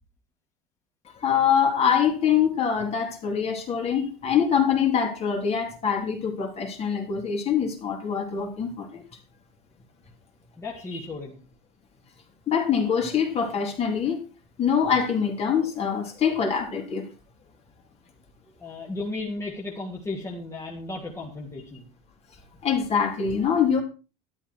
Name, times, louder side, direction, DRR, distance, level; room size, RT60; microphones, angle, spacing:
voice 1, 1.2-9.0 12.5-14.3 14.6-17.1 22.6-23.8, left 7 dB, 30° left, 3.8 m, -24 dB
voice 2, 10.6-11.4 18.6-21.9, left 2 dB, 15° left, 2.9 m, -34 dB
13.0 x 12.5 x 4.8 m
cardioid pair, 155°, 21 cm